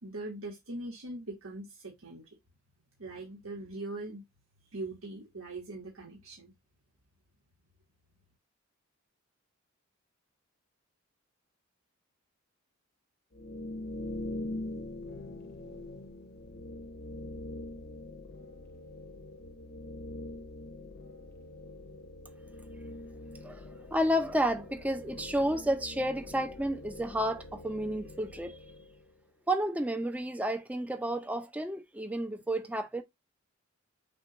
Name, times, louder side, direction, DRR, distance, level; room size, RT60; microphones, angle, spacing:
voice 1, 0.0-2.3 3.0-4.2 4.7-6.5, right 2 dB, 85° right, 1.2 m, -41 dB
sound 1, 13.3-29.1, left 2 dB, 50° left, 0.7 m, -43 dB
voice 2, 23.9-28.6 29.5-33.0, equal, 5° right, 0.5 m, -31 dB
6.0 x 2.3 x 3.8 m
head